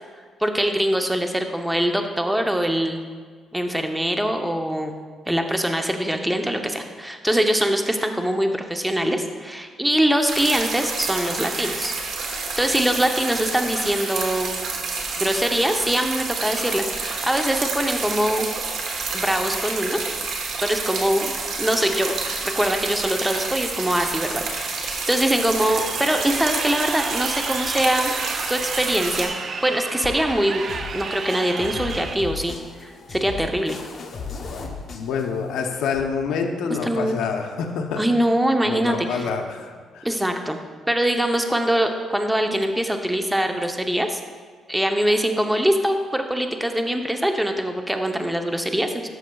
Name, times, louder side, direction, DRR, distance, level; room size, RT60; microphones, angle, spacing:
voice 1, 0.4-3.0 3.5-4.9 5.3-11.9 12.3-14.6 15.2-18.5 19.1-20.0 20.6-22.1 22.4-28.1 28.5-29.3 29.6-30.6 30.9-32.5 32.8-33.8 36.8-37.2 38.0-39.3 40.0-40.6 40.9-44.2 44.7-49.1, right 1 dB, 5° right, 5 dB, 0.7 m, -23 dB
sound 1, 10.3-29.3, right 4 dB, 75° right, 1.3 m, -29 dB
Crowd, 25.7-32.1, right 5 dB, 50° right, 0.5 m, -32 dB
sound 2, 30.0-36.0, left 4 dB, 55° left, 0.8 m, -37 dB
voice 2, 34.9-38.0 38.7-40.1, left 5 dB, 85° left, 3 dB, 0.7 m, -27 dB
12.5 x 6.4 x 2.3 m, 1.5 s
cardioid pair, 90°, 0 cm